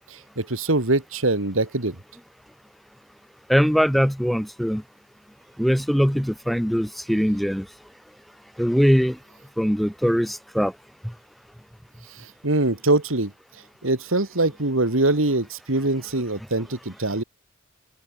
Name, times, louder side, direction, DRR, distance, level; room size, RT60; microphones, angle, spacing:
voice 1, 0.4-2.0 12.4-13.3 13.8-17.2, right 2 dB, 90° right, 2.8 m, -23 dB
voice 2, 3.5-4.8 5.6-7.6 8.6-9.2 9.6-10.7, equal, ahead, 0.8 m, -21 dB
open air
head